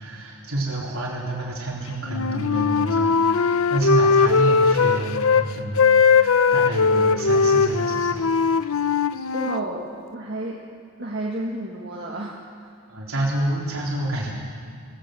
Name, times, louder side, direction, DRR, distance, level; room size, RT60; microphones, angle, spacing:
voice 1, 0.0-8.2 12.9-14.3, right 1 dB, 70° right, -4 dB, 3.8 m, -28 dB
Wind instrument woodwind instrument, 2.1-5.4 5.8-9.6, left 5 dB, 75° left, 0.7 m, -19 dB
voice 2, 9.3-10.6 11.0-12.4, right 1 dB, 50° right, -3 dB, 1.9 m, -31 dB
19.5 x 18.5 x 7.8 m, 2.4 s
head